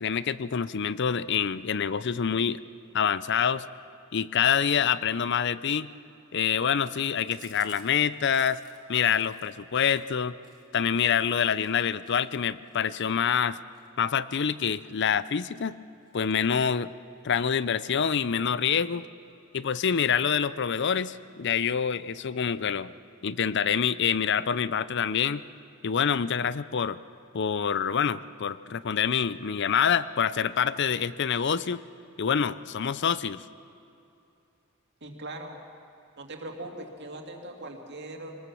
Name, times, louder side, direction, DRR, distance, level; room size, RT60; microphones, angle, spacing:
voice 1, 0.0-2.6 2.9-3.6 4.1-5.9 6.3-8.6 8.9-10.3 10.7-13.6 14.0-15.8 16.1-16.9 17.2-19.1 19.5-22.9 23.2-25.4 25.8-27.0 27.3-31.8 32.2-33.4, left 7 dB, 55° left, 16 dB, 0.5 m, -26 dB
Chewing mastication, 7.3-11.2 11.5-11.7 12.0-15.0 15.4-15.7 16.0-16.9 17.2-17.3 17.6-17.7 18.0-18.6, right 4 dB, 20° right, 2.2 m, -55 dB
voice 2, 35.0-35.6 36.2-38.4, right 1 dB, 55° right, 3 dB, 2.3 m, -40 dB
24.5 x 19.5 x 7.1 m, 2.7 s
head